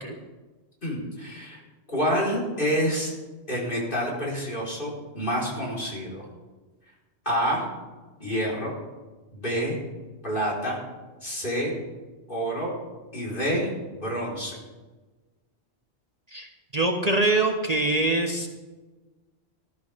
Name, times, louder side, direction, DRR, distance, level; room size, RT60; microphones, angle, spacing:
voice 1, 0.8-1.6 1.9-3.1 3.5-6.3 7.2-7.6 8.2-8.8 9.3-9.7 10.2-10.8 11.2-11.7 12.3-12.7 13.1-14.6, equal, 50° left, -4 dB, 4.9 m, -28 dB
voice 2, 16.3-18.5, right 2 dB, 35° right, 3 dB, 1.2 m, -24 dB
19.5 x 13.0 x 3.7 m, 1.2 s
omnidirectional pair, 1.2 m